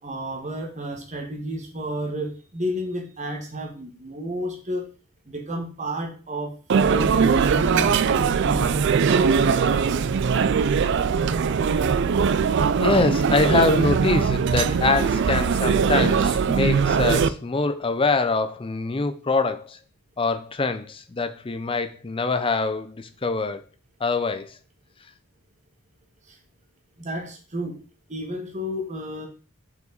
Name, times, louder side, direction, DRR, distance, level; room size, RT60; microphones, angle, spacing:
voice 1, 0.0-4.9 5.3-9.3 26.3-26.4 27.0-27.8 28.1-29.3, equal, 35° right, 1.4 m, -31 dB
sound 1, 6.7-17.3, right 6 dB, 50° right, 0.3 m, -21 dB
voice 2, 12.8-19.8 20.2-23.6 24.0-24.5, left 3 dB, 25° left, 0.5 m, -24 dB
5.6 x 5.0 x 3.9 m
head